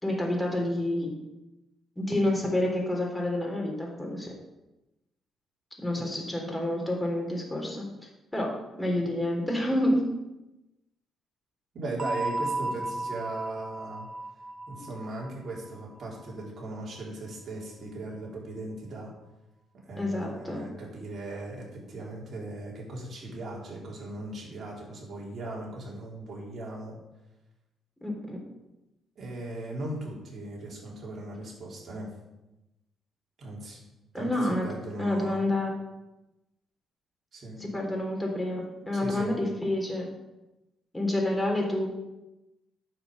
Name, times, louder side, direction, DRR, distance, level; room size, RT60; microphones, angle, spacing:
voice 1, 0.0-1.1 2.0-4.4 5.8-7.9 8.3-10.0 20.0-20.6 28.0-28.4 34.1-34.7 35.0-35.8 37.6-40.1 40.9-41.9, left 1 dB, 10° left, 0 dB, 3.5 m, -28 dB
voice 2, 11.7-14.1 14.7-19.1 19.8-27.0 29.2-32.1 33.4-33.8 34.1-35.5 37.3-37.6 38.9-39.4, right 2 dB, 50° right, -4 dB, 4.4 m, -38 dB
sound 1, 12.0-16.6, right 2 dB, 30° right, 1.4 m, -35 dB
9.9 x 6.1 x 7.2 m, 0.99 s
cardioid pair, 90°, 0 cm